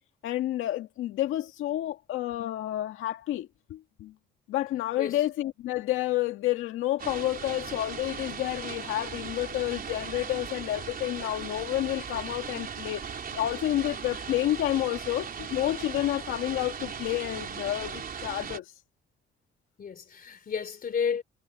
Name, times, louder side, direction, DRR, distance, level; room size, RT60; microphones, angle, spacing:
voice 1, 0.2-4.1 4.5-18.7, left 14 dB, 90° left, 1.9 m, -30 dB
sound 1, 7.0-18.6, right 6 dB, 50° right, 4.2 m, -38 dB
voice 2, 19.8-21.2, left 6 dB, 45° left, 3.1 m, -31 dB
cardioid pair, 90°, 20 cm